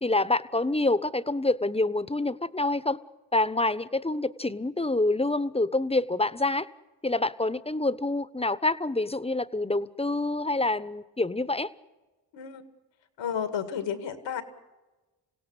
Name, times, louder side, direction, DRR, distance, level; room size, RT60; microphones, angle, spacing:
voice 1, 0.0-3.0 3.3-6.7 7.0-11.7, left 2 dB, 15° left, 15 dB, 1.1 m, -27 dB
voice 2, 13.2-14.4, left 8 dB, 80° left, 9 dB, 2.2 m, -32 dB
26.5 x 17.0 x 8.3 m, 1.2 s
supercardioid pair, 45°, 44 cm